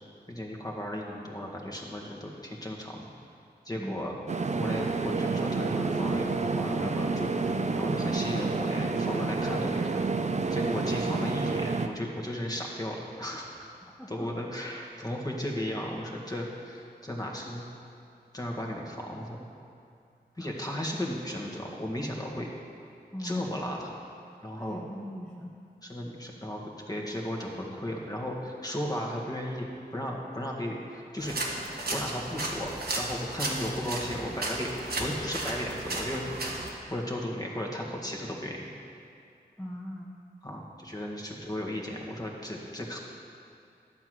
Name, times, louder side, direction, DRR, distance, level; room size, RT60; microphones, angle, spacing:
voice 1, 0.3-3.0 3.7-4.1 4.5-13.7 14.1-17.7 18.3-19.4 20.4-22.5 23.2-24.0 24.4-24.8 25.8-31.4 31.9-36.2 36.5-38.6 40.4-43.0, equal, 20° left, -1 dB, 1.8 m, -35 dB
voice 2, 3.7-4.1 13.9-14.5 20.4-20.5 23.1-23.6 24.6-25.6 27.1-27.2 39.6-40.2, equal, 5° left, -3 dB, 0.9 m, -41 dB
sound 1, 4.3-11.9, right 3 dB, 45° right, 0.6 m, -29 dB
sound 2, 31.2-36.7, right 2 dB, 65° right, 1.4 m, -34 dB
11.5 x 4.8 x 7.7 m, 2.4 s
cardioid pair, 45°, 17 cm